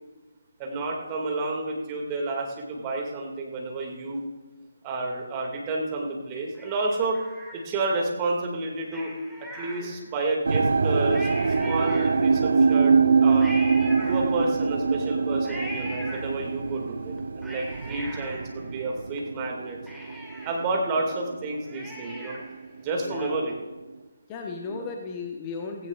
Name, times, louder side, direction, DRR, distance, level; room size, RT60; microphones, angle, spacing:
voice 1, 0.6-4.2 4.8-7.2 7.5-9.1 9.5-11.3 11.6-12.9 13.2-13.5 14.1-19.8 20.4-22.4 22.8-23.5 24.7-24.8, right 2 dB, 20° right, 0 dB, 2.0 m, -30 dB
Cat, 6.5-8.0 8.9-10.3 10.7-10.8 11.0-12.5 13.4-14.7 15.4-16.7 17.2-19.2 19.5-19.6 19.9-22.6 23.0-23.1, equal, ahead, 1.7 m, -41 dB
sound 1, 10.5-21.6 21.9-22.5 23.1-23.2, right 5 dB, 55° right, 0.5 m, -24 dB
voice 2, 22.9-23.5 24.3-25.9, left 4 dB, 20° left, 3 dB, 0.9 m, -35 dB
16.0 x 16.0 x 2.4 m, 1.3 s
figure-of-eight pair, 150°, 0 cm